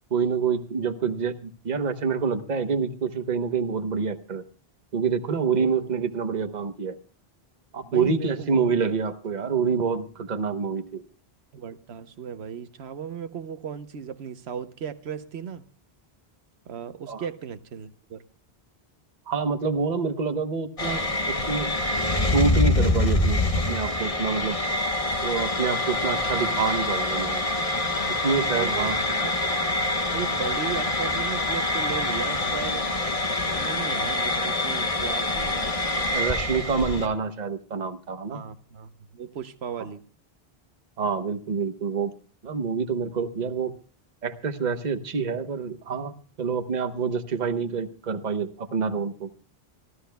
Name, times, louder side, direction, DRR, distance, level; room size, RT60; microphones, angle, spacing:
voice 1, 0.1-4.4 4.9-7.0 7.7-11.0 17.1-17.2 19.3-21.7 22.2-24.6 25.2-27.4 28.2-29.2 36.0-38.4 41.0-42.1 42.4-43.7 44.2-49.3, right 5 dB, 45° right, 9 dB, 1.0 m, -27 dB
voice 2, 7.8-8.7 11.5-15.7 16.7-18.2 28.5-29.3 30.1-32.9 33.5-35.7 38.3-40.0, right 7 dB, 80° right, 11 dB, 1.1 m, -36 dB
sound 1, 20.8-37.1, left 2 dB, 35° left, 1.3 m, -25 dB
26.5 x 14.0 x 2.2 m, 0.37 s
omnidirectional pair, 1.1 m